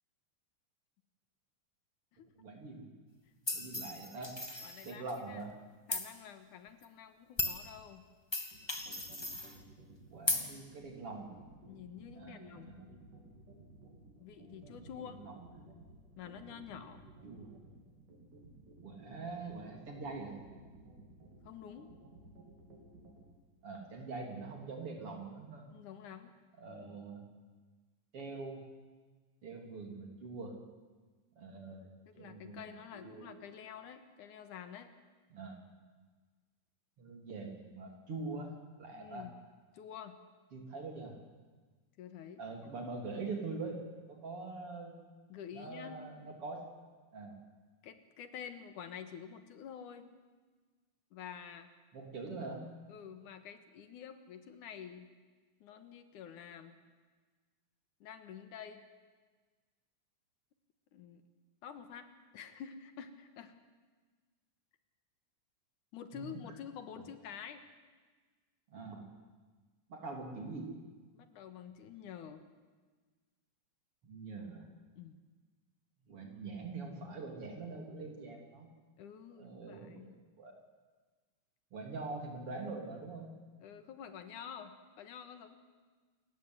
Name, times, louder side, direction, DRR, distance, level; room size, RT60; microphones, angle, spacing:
voice 1, 2.4-2.9 3.5-4.4 4.8-5.6 10.1-11.3 12.1-12.9 14.6-15.5 17.2-17.5 18.8-20.3 23.6-25.7 26.6-27.2 28.1-28.6 29.4-30.5 31.4-31.9 32.1-33.3 35.3-35.6 37.0-38.5 38.8-39.3 40.5-41.1 42.4-43.8 44.1-44.9 45.5-46.6 47.1-47.3 51.9-52.7 66.1-66.3 67.0-67.1 68.7-69.0 69.9-70.7 74.0-74.6 76.1-78.7 79.4-80.5 81.7-83.3, right 3 dB, 45° right, 2 dB, 4.2 m, -44 dB
sound 1, 3.5-5.1 5.9-6.1 6.8-6.9 7.4-7.6 8.3-9.5 10.3-10.4, left 2 dB, 15° left, 0.9 m, -36 dB
voice 2, 4.6-5.5 5.9-8.0 11.7-12.8 14.2-15.2 16.2-17.0 21.4-21.9 25.7-26.3 32.1-34.9 38.9-39.3 39.7-40.2 42.0-42.4 45.3-46.1 47.8-50.1 51.1-51.7 52.9-55.1 55.6-56.8 58.0-58.8 60.9-61.2 61.6-63.5 65.9-67.6 71.1-72.4 75.0-75.2 79.0-80.2 83.6-85.6, left 8 dB, 75° left, 9 dB, 2.8 m, -48 dB
sound 2, 8.5-23.2, right 3 dB, 85° right, 5.5 m, -56 dB
28.5 x 15.0 x 9.5 m, 1.4 s
omnidirectional pair, 3.7 m